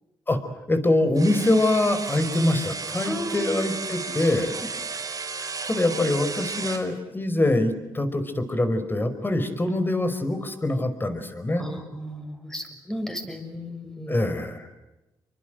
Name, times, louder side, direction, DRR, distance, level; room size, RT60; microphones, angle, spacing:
voice 1, 0.7-4.5 5.7-11.7 14.1-14.7, left 1 dB, 20° left, 9 dB, 5.1 m, -24 dB
sound 1, 1.2-6.9, right 4 dB, 40° right, 5.2 m, -33 dB
voice 2, 3.0-3.6 11.6-14.2, equal, 5° left, 6 dB, 6.6 m, -34 dB
28.5 x 24.0 x 7.9 m, 0.99 s
cardioid pair, 85°, 9 cm